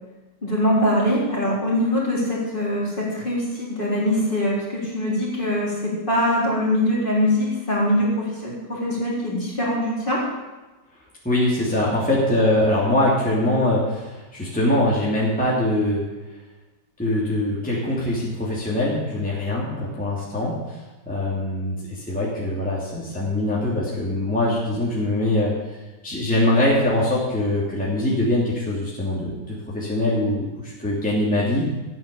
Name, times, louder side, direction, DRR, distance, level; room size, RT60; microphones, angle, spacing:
voice 1, 0.4-10.2, left 1 dB, 30° left, -5 dB, 4.0 m, -23 dB
voice 2, 11.2-16.0 17.0-20.5 21.0-25.5 26.0-31.7, left 1 dB, 5° left, -6 dB, 2.9 m, -22 dB
13.5 x 9.0 x 7.1 m, 1.1 s
omnidirectional pair, 1.9 m